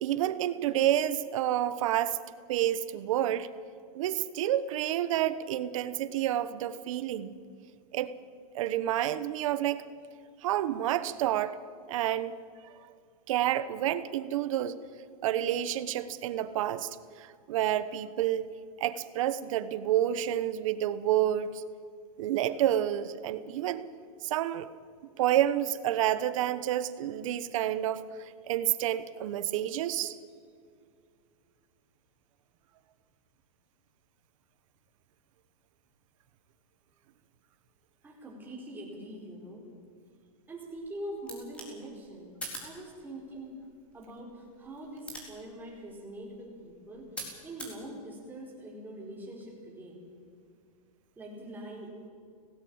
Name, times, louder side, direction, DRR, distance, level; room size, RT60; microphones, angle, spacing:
voice 1, 0.0-2.2 2.5-3.5 3.9-7.3 7.9-8.1 8.5-9.8 10.4-11.6 11.9-12.4 12.7-12.8 13.3-14.7 15.2-16.9 17.2-18.5 18.8-21.6 22.2-23.9 24.2-24.7 25.2-28.1 28.5-30.2, right 12 dB, 60° right, 14 dB, 1.2 m, -29 dB
voice 2, 38.0-39.7 40.5-42.3 42.6-43.6 43.9-47.1 47.4-50.0 51.2-51.9, right 1 dB, 10° right, -3 dB, 4.5 m, -43 dB
sound 1, 40.7-47.8, right 1 dB, 5° left, 3.9 m, -47 dB
17.5 x 16.5 x 8.8 m, 2.2 s
supercardioid pair, 160°, 19 cm